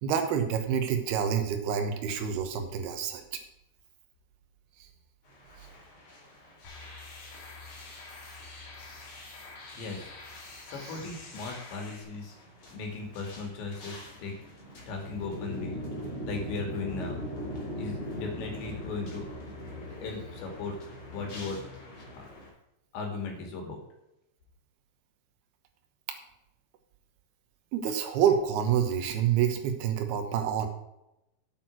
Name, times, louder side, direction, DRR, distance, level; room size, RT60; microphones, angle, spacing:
voice 1, 0.0-3.2 10.7-11.0 27.7-30.7, right 8 dB, 70° right, 6 dB, 2.9 m, -27 dB
sound 1, 5.3-22.5, equal, 30° left, 3.2 m, -42 dB
sound 2, 6.6-12.0, left 3 dB, 50° left, 3.9 m, -47 dB
voice 2, 10.7-12.4 12.7-14.3 14.9-15.8 16.3-17.2 17.8-19.2 20.0-20.7 21.1-21.6 22.1-22.2 22.9-23.8, left 4 dB, 80° left, 2 dB, 4.6 m, -37 dB
9.3 x 8.5 x 6.1 m, 0.87 s
omnidirectional pair, 5.0 m